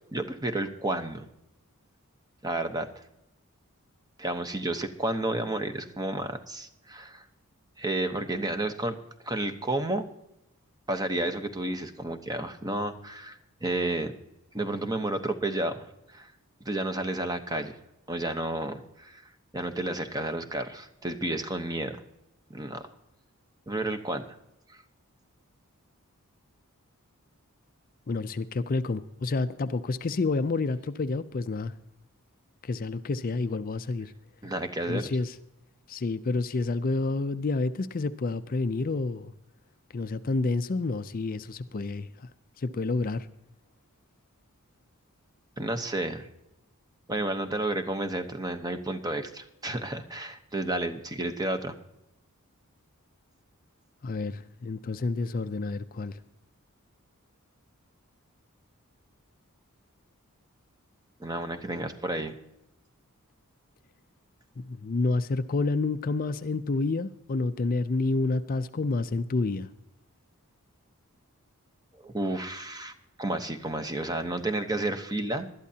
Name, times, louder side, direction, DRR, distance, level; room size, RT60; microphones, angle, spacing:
voice 1, 0.1-1.3 2.4-2.9 4.2-7.2 7.8-9.0 9.2-10.1 10.9-14.1 14.5-16.3 16.6-17.7 18.1-19.2 19.5-22.0 22.5-22.8 23.7-24.3 24.7-24.8 34.4-35.1 45.6-46.3 47.1-51.8 61.2-62.3 72.0-72.9 73.2-75.5, right 2 dB, 15° right, 8 dB, 0.9 m, -31 dB
voice 2, 28.1-31.7 32.6-34.1 34.9-35.4 35.9-39.3 39.9-42.3 42.6-43.3 54.0-56.2 64.6-69.7, left 3 dB, 40° left, 11 dB, 0.4 m, -29 dB
20.0 x 12.0 x 2.8 m, 0.86 s
head